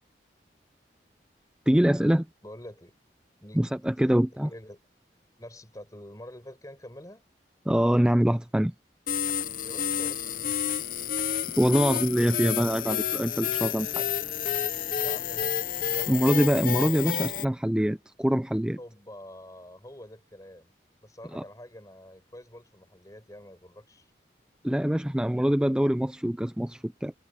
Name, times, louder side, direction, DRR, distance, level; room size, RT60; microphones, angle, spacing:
voice 1, 1.7-2.3 3.5-4.5 7.7-8.7 11.6-14.0 16.1-18.8 21.3-21.4 24.6-27.1, equal, 5° right, 0.4 m, -24 dB
voice 2, 2.4-3.0 3.4-3.7 4.0-4.8 5.4-7.2 9.6-10.6 15.0-16.4 18.8-20.7 21.0-24.1, left 1 dB, 20° left, 5.0 m, -47 dB
sound 1, 9.1-17.5, left 9 dB, 50° left, 0.7 m, -30 dB
head